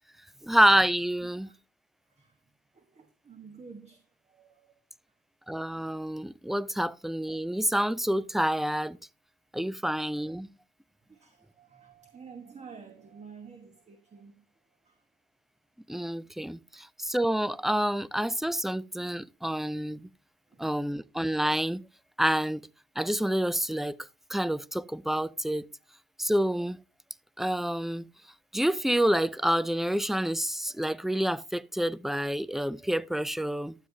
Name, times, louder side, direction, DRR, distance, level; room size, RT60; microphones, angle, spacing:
voice 1, 0.4-1.5 5.5-9.0 9.5-10.5 15.9-20.1 20.6-21.8 22.2-22.7 23.0-24.0 24.3-25.7 26.2-26.8 27.4-28.1 28.5-33.7, right 1 dB, ahead, 0.3 m, -28 dB
voice 2, 2.7-4.8 11.1-14.4 14.8-15.0 16.7-16.8 20.5-20.9, right 5 dB, 35° right, 1.3 m, -50 dB
12.0 x 8.2 x 2.8 m
cardioid pair, 90°, 20 cm